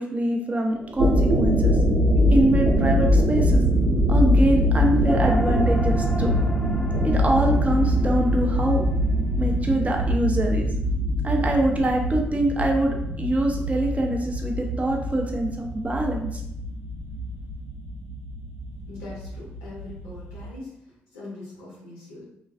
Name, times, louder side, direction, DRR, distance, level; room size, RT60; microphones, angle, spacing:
voice 1, 0.0-1.8 2.3-3.6 4.1-6.3 7.0-8.8 9.4-10.7 11.2-16.4, right 1 dB, 25° right, 1 dB, 0.6 m, -24 dB
sound 1, 0.8-20.5, equal, 75° right, 1.0 m, -23 dB
sound 2, 5.1-9.8, equal, 10° left, 0.3 m, -35 dB
voice 2, 18.9-20.8 21.1-22.2, left 2 dB, 90° left, -5 dB, 0.6 m, -41 dB
2.4 x 2.3 x 2.2 m, 0.78 s
hypercardioid pair, 45°, 5 cm